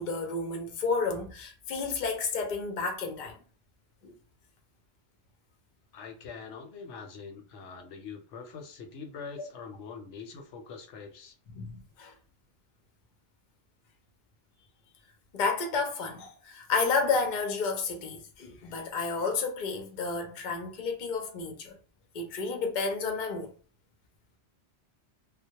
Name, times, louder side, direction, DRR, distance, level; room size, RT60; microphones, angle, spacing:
voice 1, 0.0-3.4 4.0-4.1 11.5-12.1 15.3-21.8 22.1-23.5, left 4 dB, 55° left, 0.6 m, -31 dB
voice 2, 5.9-11.4, left 5 dB, 80° left, 0.9 m, -44 dB
2.2 x 2.0 x 2.8 m
omnidirectional pair, 1.2 m